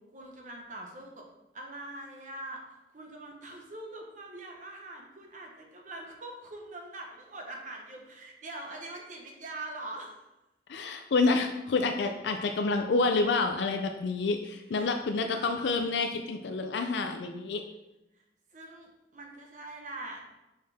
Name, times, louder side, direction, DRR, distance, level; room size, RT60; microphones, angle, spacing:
voice 1, 0.1-1.3 1.5-10.2 14.7-14.9 15.3-15.8 18.2-18.3 18.5-20.3, right 2 dB, 45° right, 1 dB, 1.1 m, -43 dB
voice 2, 10.7-17.6, left 3 dB, 75° left, 5 dB, 0.4 m, -28 dB
6.4 x 4.6 x 3.5 m, 0.95 s
head